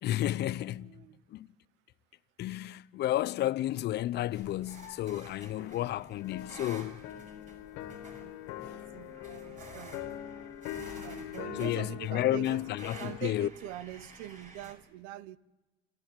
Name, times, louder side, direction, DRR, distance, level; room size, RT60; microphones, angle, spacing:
voice 1, 0.0-0.9 1.3-1.5 2.4-7.0 10.9-11.0 11.6-13.5, left 14 dB, 60° left, 0.7 m, -32 dB
voice 2, 0.7-1.2 5.5-6.0 8.2-10.0 10.6-12.6 13.0-15.4, right 13 dB, 80° right, 0.8 m, -44 dB
sound 1, 3.9-14.7, right 2 dB, 40° right, 6.3 m, -51 dB
sound 2, 6.2-13.4, left 13 dB, 85° left, 2.1 m, -43 dB
27.0 x 13.5 x 9.2 m
supercardioid pair, 85°, 20 cm